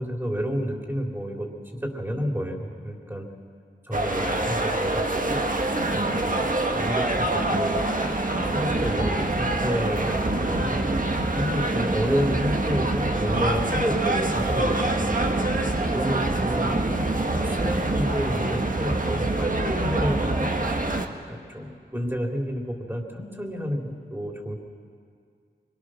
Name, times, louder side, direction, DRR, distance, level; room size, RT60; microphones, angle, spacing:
voice 1, 0.0-1.5 1.8-3.3 3.9-5.4 5.9-6.5 6.7-7.9 8.3-10.8 11.3-15.3 15.9-16.7 17.1-20.5 21.3-24.6, equal, 10° right, 0 dB, 3.6 m, -30 dB
sound 1, 3.9-21.1, right 2 dB, 45° right, 1.6 m, -25 dB
24.5 x 23.0 x 6.4 m, 2.2 s
cardioid pair, 45°, 19 cm